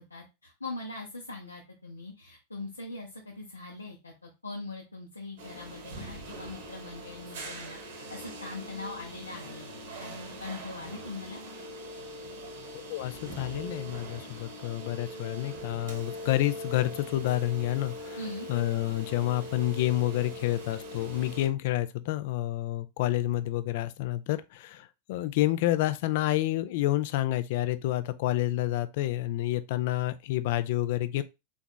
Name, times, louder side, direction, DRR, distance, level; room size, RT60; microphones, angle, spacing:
voice 1, 0.0-9.7 10.0-11.4 18.2-18.5, left 3 dB, 80° left, 0.7 m, -41 dB
sound 1, 5.4-21.5, equal, 55° right, 1.0 m, -42 dB
voice 2, 12.7-18.2 18.5-31.2, left 14 dB, 50° left, 0.3 m, -29 dB
3.9 x 3.4 x 2.2 m
figure-of-eight pair, 90°, 0 cm